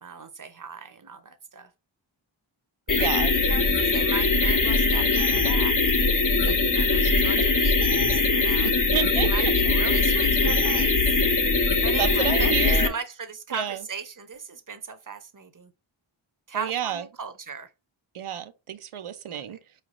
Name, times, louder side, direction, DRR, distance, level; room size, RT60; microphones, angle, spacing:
voice 1, 0.0-1.7 2.9-6.0 6.7-8.7 9.1-11.0 11.8-15.7 16.5-17.7 19.3-19.4, right 5 dB, 40° right, 0.7 m, -37 dB
sound 1, 2.9-12.9, left 3 dB, 40° left, 0.7 m, -21 dB
voice 2, 2.9-3.3 6.5-6.6 7.1-7.4 8.6-9.5 12.0-12.9 13.5-13.8 16.5-17.0 18.1-19.6, right 9 dB, 85° right, 0.6 m, -30 dB
4.9 x 3.3 x 2.5 m
wide cardioid pair, 40°, 49 cm